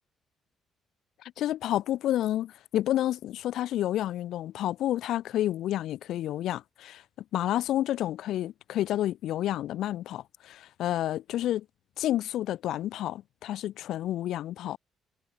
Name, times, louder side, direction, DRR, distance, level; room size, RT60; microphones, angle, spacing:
voice 1, 1.2-7.0 7.3-11.6 12.0-14.8, left 13 dB, 80° left, 1.7 m, -30 dB
cardioid pair, 90°, 0 cm